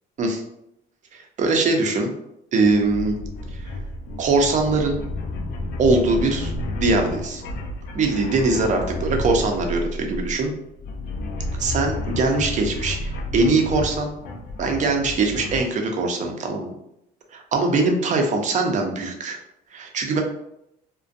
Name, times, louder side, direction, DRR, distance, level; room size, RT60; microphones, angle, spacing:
voice 1, 1.1-2.1 2.5-3.1 3.5-3.7 4.2-5.0 5.8-6.5 6.8-7.4 7.9-10.5 11.6-14.1 14.6-16.7 17.3-19.4 19.7-20.2, right 3 dB, 45° right, 3 dB, 0.5 m, -22 dB
sound 1, 2.7-15.7, left 1 dB, 75° left, 0.4 m, -31 dB
2.4 x 2.2 x 2.5 m, 0.81 s
cardioid pair, 110°, 17 cm